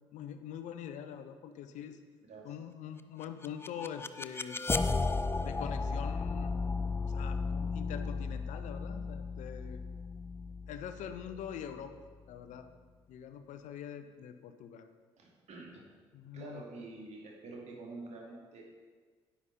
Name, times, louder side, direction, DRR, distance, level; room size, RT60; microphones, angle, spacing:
voice 1, 0.0-2.0 2.4-4.7 5.4-6.6 7.0-9.8 10.7-12.7 13.1-14.9 16.1-16.6, left 8 dB, 60° left, 9 dB, 0.8 m, -44 dB
sound 1, 3.2-12.2, left 4 dB, 15° left, 0.5 m, -35 dB
voice 2, 15.2-15.8 16.3-18.6, right 3 dB, 50° right, -1 dB, 2.5 m, -47 dB
9.7 x 7.3 x 5.5 m, 1.5 s
figure-of-eight pair, 45°, 14 cm